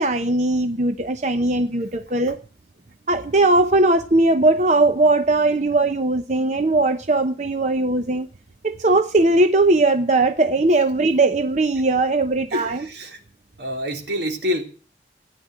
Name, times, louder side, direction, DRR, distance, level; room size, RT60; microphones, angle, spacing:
voice 1, 0.0-2.4 3.1-8.3 8.6-12.9, right 2 dB, 40° right, 0.8 m, -19 dB
voice 2, 12.5-13.2 13.6-14.6, left 1 dB, 75° right, 3.6 m, -27 dB
16.5 x 10.0 x 7.7 m
head